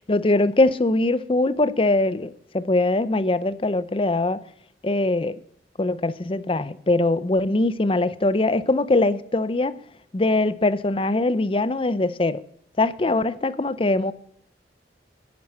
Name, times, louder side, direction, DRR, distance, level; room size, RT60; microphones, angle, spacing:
voice 1, 0.1-4.4 4.8-5.4 5.8-9.7 10.1-12.4 12.8-14.1, left 2 dB, 30° left, 0.6 m, -22 dB
10.5 x 10.0 x 6.4 m
head